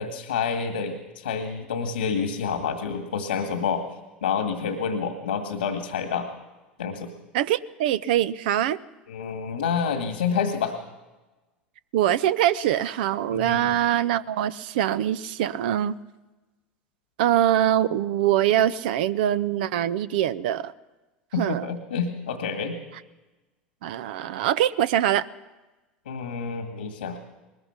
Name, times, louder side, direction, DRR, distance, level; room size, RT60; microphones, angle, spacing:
voice 1, 0.0-3.8 4.2-6.3 6.8-7.1 9.1-10.7 13.3-13.7 21.3-22.8 26.1-27.2, left 6 dB, 85° left, 6 dB, 2.0 m, -28 dB
voice 2, 7.3-8.8 11.9-15.9 17.2-20.7 21.4-21.7 23.8-25.3, right 11 dB, 70° right, 14 dB, 0.6 m, -23 dB
21.0 x 20.5 x 6.0 m, 1.1 s
hypercardioid pair, 80°, 5 cm